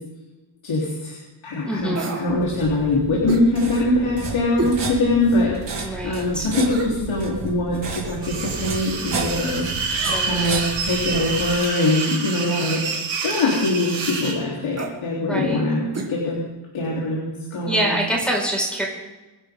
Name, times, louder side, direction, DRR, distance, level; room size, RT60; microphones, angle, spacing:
voice 1, 0.6-1.2 1.4-9.7 10.2-12.8 13.2-15.8 16.1-16.4 16.7-17.9, left 2 dB, 85° left, -4 dB, 3.9 m, -23 dB
voice 2, 1.6-2.2 5.8-6.5 9.9-10.5 12.4-12.7 15.2-15.6 17.7-18.9, right 1 dB, ahead, -2 dB, 5.2 m, -26 dB
sound 1, 1.9-2.3 3.3-3.5 4.6-4.8 5.3-5.4 6.6-7.0 7.9-8.3 9.9-10.5 11.6-12.0 13.3-13.6 14.7-15.0 15.9-16.1 16.4-16.5, right 3 dB, 35° right, 2.5 m, -30 dB
sound 2, 2.3-11.6, right 4 dB, 70° right, 3.1 m, -32 dB
sound 3, 8.2-14.4, right 4 dB, 85° right, 6.1 m, -28 dB
26.0 x 11.0 x 3.8 m, 1.2 s
wide cardioid pair, 160°, 45 cm